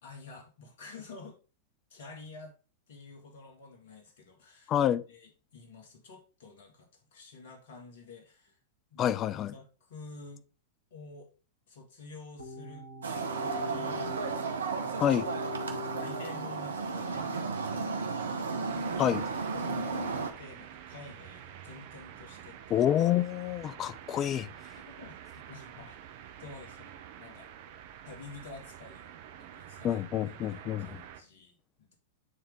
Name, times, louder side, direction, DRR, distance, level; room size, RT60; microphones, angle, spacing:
voice 1, 0.0-1.4 1.9-2.6 2.9-4.7 5.1-8.6 8.9-10.4 10.9-11.3 11.7-12.9 13.4-15.2 15.7-18.4 18.7-19.0 19.5-22.9 24.9-26.0 26.4-27.5 28.0-32.0, left 3 dB, 60° left, 1.9 m, -50 dB
voice 2, 4.7-5.0 9.0-9.5 15.0-15.3 19.0-19.2 22.7-24.5 29.8-31.0, left 10 dB, 30° left, 0.5 m, -28 dB
sound 1, 12.4-16.5, left 3 dB, 85° left, 2.2 m, -42 dB
sound 2, 13.0-20.3, right 4 dB, 75° right, 1.0 m, -34 dB
sound 3, 18.7-31.2, right 10 dB, 55° right, 0.8 m, -48 dB
9.4 x 3.6 x 3.6 m
figure-of-eight pair, 95°, 0 cm